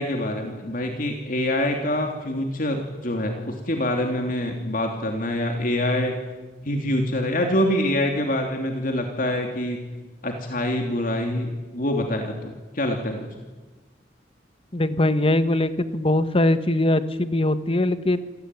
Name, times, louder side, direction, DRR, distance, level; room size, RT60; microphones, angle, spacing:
voice 1, 0.0-6.1 6.6-9.8 10.2-13.3, left 1 dB, 50° left, 3 dB, 3.0 m, -25 dB
voice 2, 14.7-18.2, left 1 dB, 35° left, 12 dB, 1.4 m, -21 dB
27.5 x 18.5 x 9.8 m, 1.2 s
head